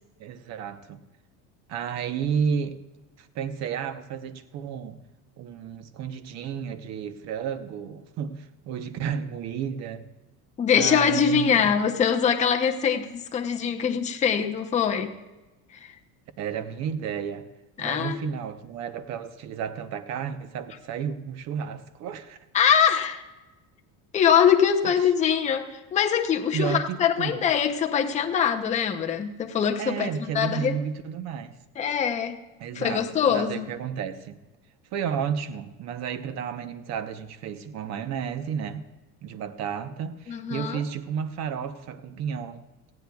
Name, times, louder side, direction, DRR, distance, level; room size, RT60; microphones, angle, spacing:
voice 1, 0.2-1.0 1.7-2.8 3.2-5.0 5.4-10.1 10.7-11.7 16.4-17.5 17.8-22.4 26.5-27.5 29.8-31.5 32.6-34.4 34.9-38.9 39.2-42.6, right 7 dB, 45° right, 0.8 m, -32 dB
voice 2, 10.6-15.1 15.8-15.9 17.8-18.2 22.5-23.2 24.1-30.1 30.3-30.8 31.8-32.4 32.7-33.7 40.3-40.8, left 7 dB, 20° left, 0.7 m, -23 dB
18.5 x 15.0 x 2.3 m
cardioid pair, 170°, 38 cm